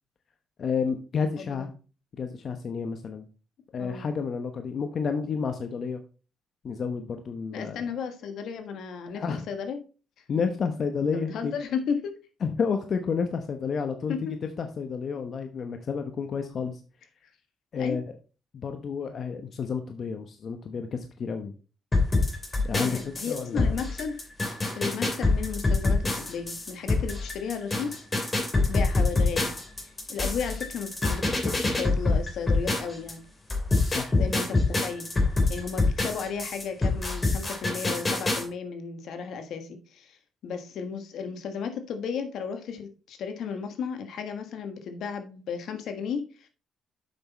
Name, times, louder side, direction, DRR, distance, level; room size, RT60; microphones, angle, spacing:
voice 1, 0.6-1.7 2.2-3.3 3.7-6.0 6.6-7.8 9.1-9.4 10.3-11.5 12.4-16.8 17.7-18.0 18.5-21.5 22.6-23.0 23.3-23.7 33.8-34.5, left 5 dB, 55° left, 6 dB, 0.9 m, -30 dB
voice 2, 1.4-1.7 3.8-4.1 7.5-9.8 11.1-12.2 14.1-14.3 17.8-18.0 22.8-24.2 24.7-29.5 30.1-33.2 34.2-35.1 35.5-40.2 40.4-46.5, left 6 dB, 75° left, 7 dB, 1.4 m, -34 dB
sound 1, 21.9-33.1 33.5-38.4, left 3 dB, 25° left, 2.8 m, -26 dB
7.7 x 5.9 x 4.1 m, 0.35 s
cardioid pair, 90°, 0 cm